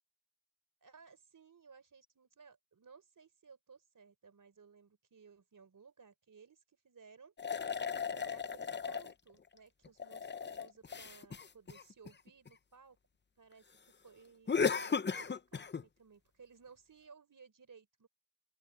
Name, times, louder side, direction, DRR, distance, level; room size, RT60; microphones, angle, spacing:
voice 1, 0.8-7.6 7.9-13.0 13.4-13.7 14.0-18.1, right 5 dB, 55° right, 3.8 m, -59 dB
sound 1, 7.4-9.1 9.8-12.5 14.5-15.8, left 6 dB, 30° left, 0.7 m, -36 dB
open air
cardioid pair, 75°, 38 cm